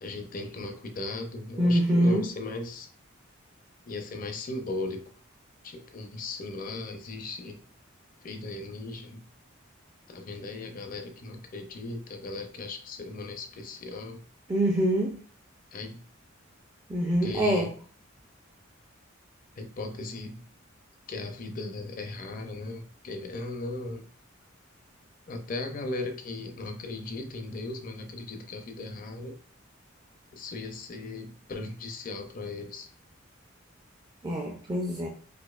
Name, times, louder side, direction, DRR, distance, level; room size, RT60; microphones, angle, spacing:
voice 1, 0.0-2.9 3.9-5.0 5.6-7.6 8.2-9.2 10.1-14.2 15.7-16.0 17.2-17.7 19.6-20.4 21.1-24.0 25.3-29.4 30.3-32.9, left 2 dB, 40° left, 5 dB, 0.5 m, -37 dB
voice 2, 1.6-2.3 14.5-15.2 16.9-17.7 34.2-35.1, equal, 20° right, 0 dB, 0.4 m, -25 dB
4.2 x 2.6 x 2.3 m, 0.43 s
head